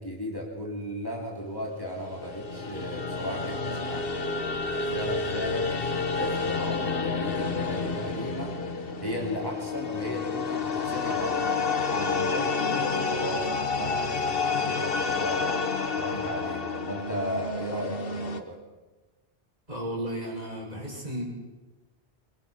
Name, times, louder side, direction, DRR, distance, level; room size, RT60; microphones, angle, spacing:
voice 1, 0.0-5.7 6.1-8.5 9.0-15.5 15.9-18.6, equal, 20° left, -1 dB, 3.1 m, -36 dB
sound 1, 1.9-18.4, left 4 dB, 60° left, 1.5 m, -29 dB
voice 2, 19.7-21.2, right 1 dB, 40° right, -2 dB, 5.8 m, -34 dB
22.0 x 21.5 x 5.8 m, 1.2 s
omnidirectional pair, 1.1 m